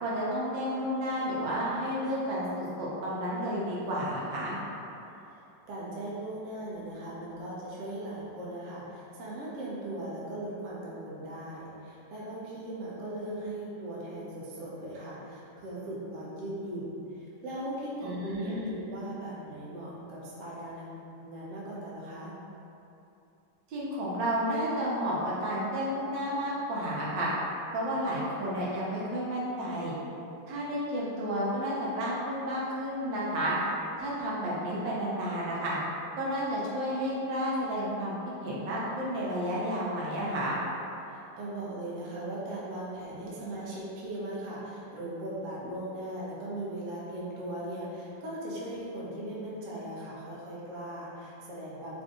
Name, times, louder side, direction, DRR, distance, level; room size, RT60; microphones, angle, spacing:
voice 1, 0.0-4.5 18.0-18.7 23.7-27.3 27.7-29.9 30.5-33.6 34.0-35.8 36.2-38.1 38.4-40.6, equal, 80° right, -6 dB, 1.4 m, -31 dB
voice 2, 5.7-20.9 21.2-22.3 41.0-52.0, right 1 dB, 55° right, -7 dB, 0.9 m, -39 dB
3.6 x 2.5 x 3.6 m, 2.8 s
omnidirectional pair, 2.0 m